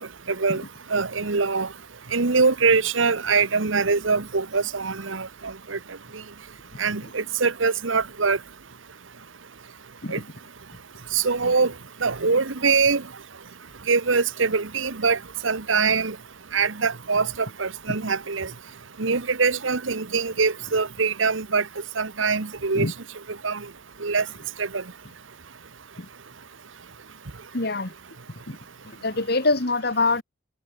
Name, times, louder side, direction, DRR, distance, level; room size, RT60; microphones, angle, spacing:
voice 1, 0.3-0.6 0.9-1.7 2.1-5.8 6.8-8.4 10.1-10.2 11.1-11.7 12.0-13.0 13.9-16.1 16.5-18.5 19.0-21.6 22.0-22.9 23.4-23.6 24.0-24.2 24.6-24.8, right 4 dB, 80° right, 1.3 m, -23 dB
voice 2, 27.5-27.9 28.5-28.6 28.8-30.2, left 3 dB, 55° left, 2.1 m, -25 dB
head